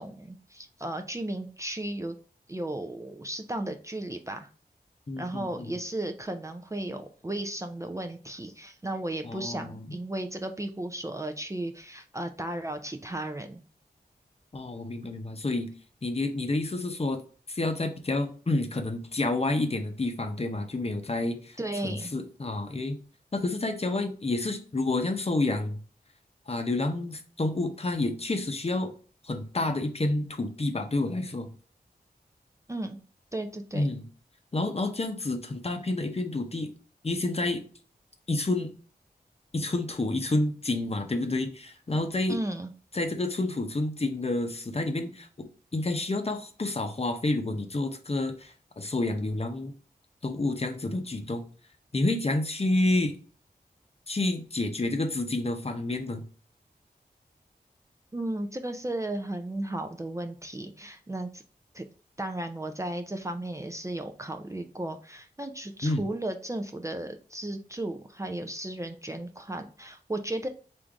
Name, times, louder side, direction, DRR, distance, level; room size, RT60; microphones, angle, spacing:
voice 1, 0.0-2.2 2.5-4.5 5.2-13.6 21.6-22.1 32.7-33.0 33.3-33.9 42.3-42.7 58.1-61.4 61.7-61.8 62.2-70.5, right 1 dB, 20° right, 5 dB, 0.4 m, -35 dB
voice 2, 5.1-5.7 9.2-9.8 14.5-15.7 16.0-17.2 17.5-21.6 21.8-23.0 23.3-25.8 26.5-28.9 29.2-31.5 33.7-34.1 34.5-36.7 37.0-37.6 38.3-38.7 39.5-42.4 42.9-49.7 50.2-51.4 51.9-53.1 54.1-56.2 65.8-66.0, left 2 dB, 40° left, 5 dB, 0.7 m, -29 dB
3.6 x 2.6 x 4.6 m, 0.40 s
wide cardioid pair, 65°, 17 cm